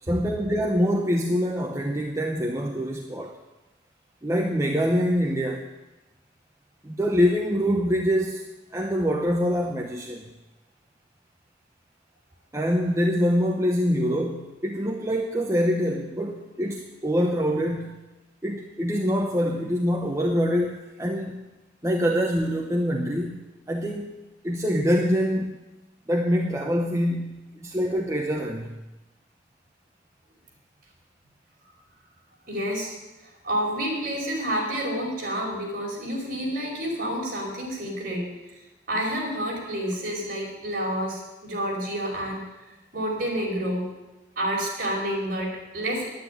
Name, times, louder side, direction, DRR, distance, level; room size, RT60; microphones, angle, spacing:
voice 1, 0.1-3.3 4.2-5.6 6.8-8.5 8.7-10.3 12.5-18.0 18.4-21.4 21.8-23.4 23.7-24.2 24.4-25.5 26.1-28.7, equal, 15° right, 1 dB, 0.9 m, -25 dB
voice 2, 32.5-33.0 33.4-38.3 38.9-42.4 42.9-43.9 44.3-46.1, equal, 50° right, -3 dB, 5.0 m, -29 dB
10.0 x 9.7 x 9.9 m, 1.1 s
head